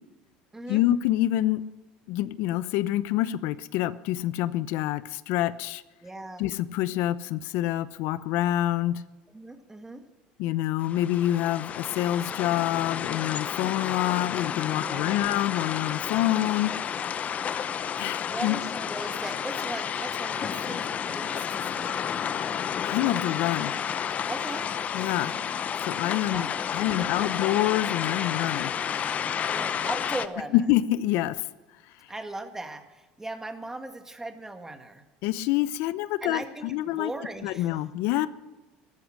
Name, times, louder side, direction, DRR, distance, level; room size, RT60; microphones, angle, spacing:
voice 1, 0.7-1.6 2.1-5.8 6.4-9.0 10.4-16.7 18.0-18.6 22.8-23.7 24.9-25.3 25.8-28.7 30.5-31.4 35.2-37.1 37.4-38.3, left 14 dB, 70° left, 16 dB, 0.7 m, -26 dB
voice 2, 6.0-6.5 9.3-10.0 14.8-15.3 18.2-22.5 24.3-24.7 26.3-26.5 26.8-27.5 29.5-30.6 32.1-35.0 36.2-37.8, right 2 dB, 10° right, 6 dB, 1.9 m, -38 dB
sound 1, 10.8-30.3, left 8 dB, 40° left, 0.8 m, -31 dB
14.0 x 13.0 x 6.4 m, 1.2 s
supercardioid pair, 100°, 4 cm